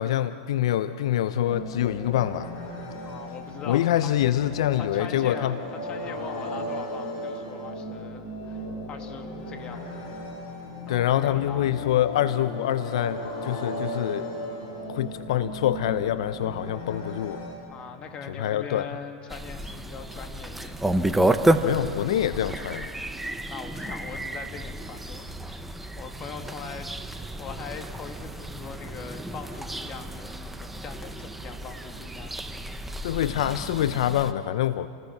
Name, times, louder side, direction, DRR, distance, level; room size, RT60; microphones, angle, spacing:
voice 1, 0.0-2.5 3.7-5.6 10.9-14.3 14.9-17.4 18.3-18.9 21.6-22.9 33.0-34.9, left 12 dB, 75° left, 13 dB, 0.6 m, -25 dB
sound 1, 1.5-17.6, equal, 50° left, 7.9 m, -36 dB
voice 2, 3.0-4.2 4.8-10.1 10.9-11.7 17.7-20.8 23.5-25.7 25.9-32.4, left 6 dB, 30° left, 5 dB, 2.3 m, -41 dB
sound 2, 19.3-34.3, right 1 dB, 5° right, 1.1 m, -30 dB
29.5 x 20.0 x 5.9 m, 2.2 s
supercardioid pair, 125°, 3 cm